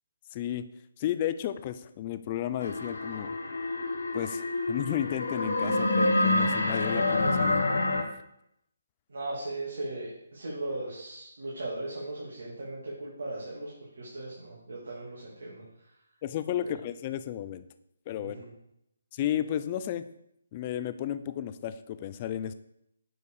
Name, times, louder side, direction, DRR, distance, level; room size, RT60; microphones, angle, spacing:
voice 1, 0.3-0.7 1.0-3.3 4.1-7.6 16.2-17.6 18.1-18.4 19.1-20.0 20.5-22.5, left 11 dB, 25° left, 12 dB, 0.4 m, -33 dB
sound 1, 2.6-8.0, left 2 dB, 85° left, 1.3 m, -27 dB
voice 2, 9.1-13.7 14.0-15.6 16.6-16.7 18.2-18.5, right 2 dB, 70° right, -6 dB, 2.7 m, -38 dB
8.1 x 4.6 x 4.8 m, 0.79 s
hypercardioid pair, 165°, 0 cm